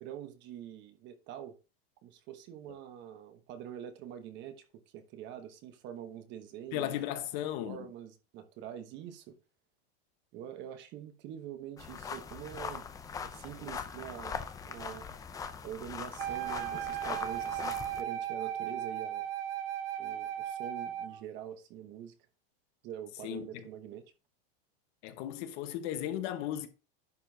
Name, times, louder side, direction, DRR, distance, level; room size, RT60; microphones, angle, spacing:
voice 1, 0.0-1.6 2.0-6.9 7.6-9.4 10.3-12.9 13.2-15.1 15.6-19.3 20.0-22.1 22.8-24.0, right 10 dB, 35° right, 1.1 m, -45 dB
voice 2, 6.7-7.9 23.2-23.7 25.0-26.7, left 11 dB, 50° left, 1.2 m, -36 dB
sound 1, 11.8-18.0, left 6 dB, 10° left, 0.5 m, -41 dB
Wind instrument woodwind instrument, 16.2-21.2, right 11 dB, 70° right, 1.0 m, -36 dB
11.0 x 6.9 x 2.8 m
supercardioid pair, 155°, 30 cm